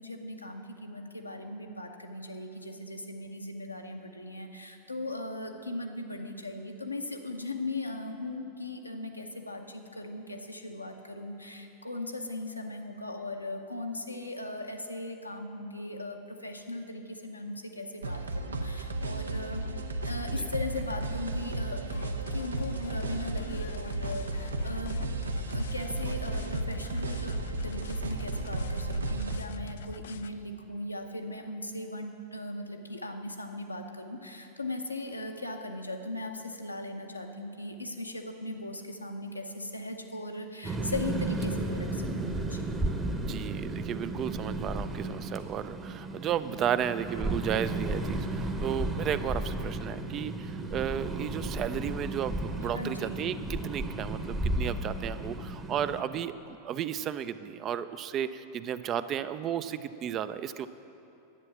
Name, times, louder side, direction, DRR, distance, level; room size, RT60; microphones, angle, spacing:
voice 1, 0.0-19.7 20.0-25.0 25.5-42.8 52.7-53.3, left 2 dB, 85° left, 3 dB, 0.9 m, -38 dB
sound 1, 18.0-29.4, right 2 dB, 75° right, 0.6 m, -33 dB
sound 2, 21.8-30.3, left 7 dB, 60° left, 0.4 m, -45 dB
sound 3, 40.6-56.0, right 2 dB, 15° right, 0.9 m, -34 dB
voice 2, 43.2-60.7, right 9 dB, 30° right, 13 dB, 0.4 m, -33 dB
10.5 x 8.6 x 7.1 m, 2.8 s
figure-of-eight pair, 90°, 0 cm